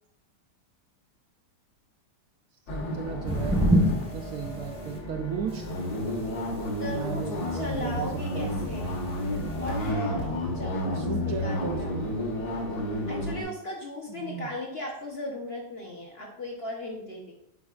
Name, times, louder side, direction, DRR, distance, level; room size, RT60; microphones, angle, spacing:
sound 1, 2.7-13.4, left 1 dB, 65° left, 1.9 m, -31 dB
voice 1, 2.7-5.7 7.0-8.1 8.3-8.5 10.9-12.1 14.1-14.5, right 7 dB, 70° right, 4 dB, 0.9 m, -35 dB
sound 2, 3.2-5.0 5.5-9.9, equal, 5° right, 0.8 m, -30 dB
voice 2, 6.8-8.9 9.6-11.9 13.1-17.3, left 1 dB, 45° left, -1 dB, 0.9 m, -37 dB
8.3 x 4.7 x 2.4 m, 0.76 s
omnidirectional pair, 1.8 m